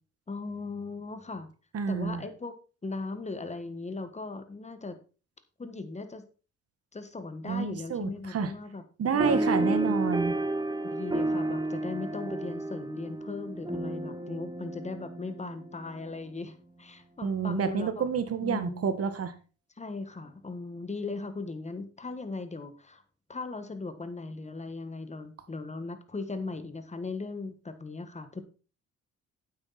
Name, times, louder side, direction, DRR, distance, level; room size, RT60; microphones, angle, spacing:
voice 1, 0.3-1.5 1.9-2.5 2.8-5.0 5.6-6.2 6.9-8.8 9.1-9.9 10.8-18.0 18.4-18.9 19.8-23.0 23.3-28.4, left 3 dB, 20° left, 10 dB, 1.5 m, -38 dB
voice 2, 1.7-2.2 7.4-8.5 9.0-10.4 17.2-19.3, right 6 dB, 50° right, 10 dB, 1.6 m, -29 dB
sound 1, 9.2-16.1, right 2 dB, 15° right, 1.5 m, -31 dB
9.0 x 8.3 x 4.2 m, 0.35 s
cardioid pair, 90°, 30 cm